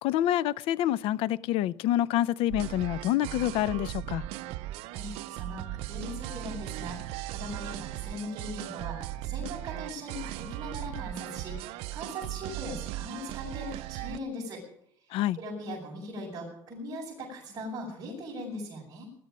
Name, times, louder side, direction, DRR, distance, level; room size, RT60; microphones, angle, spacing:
voice 1, 0.0-4.2 15.1-15.4, left 13 dB, 70° left, 0.6 m, -27 dB
sound 1, 2.5-14.2, right 15 dB, 80° right, 0.7 m, -38 dB
voice 2, 4.9-14.6 15.0-19.1, equal, 35° right, 7.0 m, -40 dB
20.0 x 13.0 x 5.2 m
cardioid pair, 145°, 10 cm